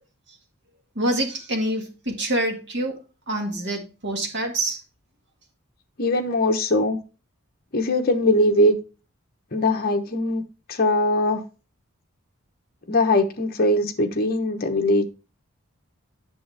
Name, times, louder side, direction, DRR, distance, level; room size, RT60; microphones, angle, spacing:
voice 1, 1.0-3.0 3.3-4.8, right 1 dB, 50° right, 1.9 m, -26 dB
voice 2, 6.0-7.0 7.7-8.7 9.5-10.4 10.7-11.4 12.9-15.1, left 1 dB, 40° left, 1.0 m, -21 dB
8.6 x 6.5 x 3.3 m
head